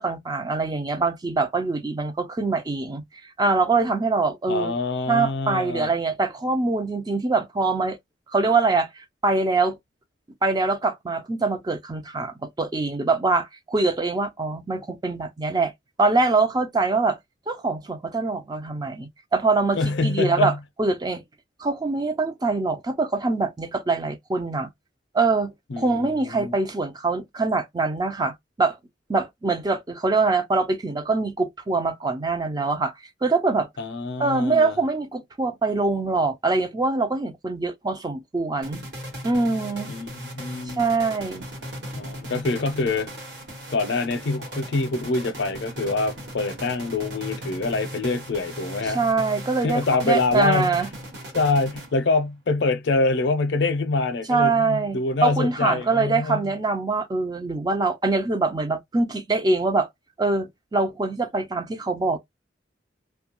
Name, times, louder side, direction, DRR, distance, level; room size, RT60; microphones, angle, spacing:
voice 1, 0.0-4.7 5.1-8.0 8.3-9.8 10.4-15.7 16.0-17.2 17.5-21.2 21.6-24.7 25.1-28.8 29.1-32.9 33.2-33.7 34.2-38.8 39.2-39.9 40.8-41.5 48.9-50.9 54.3-59.9 60.2-62.2, right 3 dB, 20° right, 0.3 m, -24 dB
voice 2, 4.5-5.9 19.8-20.6 25.7-26.6 33.8-34.8 39.9-40.8 42.0-43.1 43.7-49.0 49.6-50.8 51.3-56.4, left 3 dB, 65° left, 0.5 m, -25 dB
sound 1, 38.6-52.3, equal, 65° right, 1.2 m, -38 dB
2.3 x 2.2 x 2.8 m
head